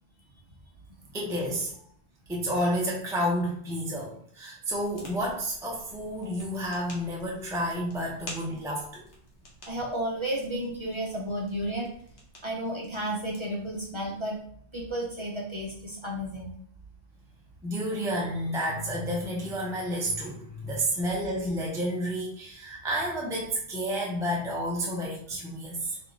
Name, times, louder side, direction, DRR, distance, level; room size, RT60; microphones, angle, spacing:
voice 1, 1.1-1.8 2.3-9.0 17.6-26.0, equal, 5° right, -4 dB, 0.6 m, -30 dB
sound 1, 4.7-14.4, left 1 dB, 85° left, 1.3 m, -50 dB
voice 2, 9.7-11.9 12.4-14.4 14.7-16.5, right 1 dB, 30° right, -3 dB, 0.9 m, -32 dB
3.4 x 3.0 x 3.8 m, 0.63 s
omnidirectional pair, 1.1 m